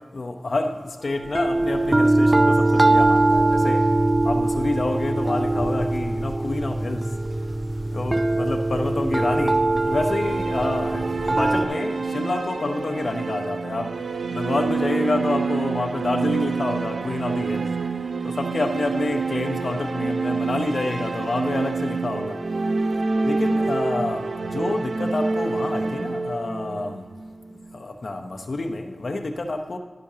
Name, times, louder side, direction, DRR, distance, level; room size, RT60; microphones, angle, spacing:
voice 1, 0.1-3.8 4.2-7.0 7.9-13.9 14.3-17.7 18.2-22.4 23.2-27.0 27.7-29.8, left 2 dB, 70° left, 5 dB, 0.8 m, -28 dB
sound 1, 1.3-11.7, right 2 dB, 30° right, 0.5 m, -21 dB
sound 2, 9.8-27.8, right 4 dB, 85° right, 0.4 m, -27 dB
11.5 x 10.0 x 2.8 m, 1.3 s
cardioid pair, 45°, 0 cm